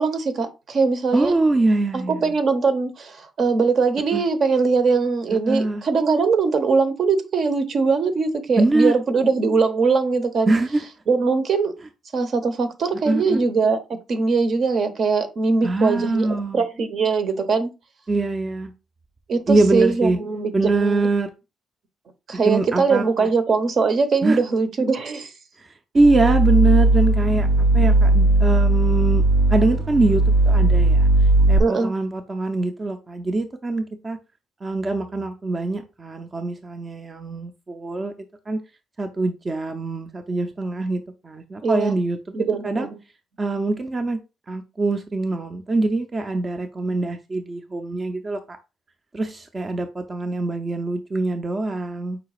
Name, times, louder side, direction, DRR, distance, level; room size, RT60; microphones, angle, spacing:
voice 1, 0.0-1.3 1.9-10.5 11.1-11.7 12.1-13.8 14.1-16.3 16.5-17.7 19.3-21.1 22.3-25.3 31.6-31.9 41.6-42.0 42.3-43.0, right 4 dB, 55° right, 0.8 m, -21 dB
voice 2, 1.1-2.3 4.1-4.2 5.5-5.8 8.6-8.9 10.5-10.8 13.1-13.4 15.6-16.6 18.1-18.7 19.5-20.2 20.5-21.3 22.4-23.3 24.2-24.4 25.6-25.7 25.9-29.2 29.5-31.1 31.5-34.2 34.6-38.1 38.5-38.6 39.0-42.9 43.4-44.2 44.5-48.4 49.1-52.2, right 2 dB, 30° right, 0.5 m, -23 dB
sound 1, 26.0-31.6, right 2 dB, 85° right, 0.5 m, -17 dB
4.8 x 2.2 x 4.8 m
cardioid pair, 90°, 0 cm